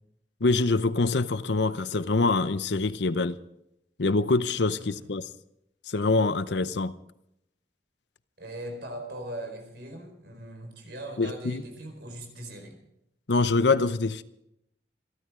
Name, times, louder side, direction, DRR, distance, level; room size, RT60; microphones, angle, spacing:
voice 1, 0.4-3.4 4.0-5.2 5.9-6.9 11.2-11.6 13.3-14.2, left 3 dB, 70° left, 0.7 m, -25 dB
voice 2, 4.6-5.0 8.4-12.8, right 1 dB, 65° right, 4.7 m, -40 dB
27.5 x 13.0 x 3.8 m
head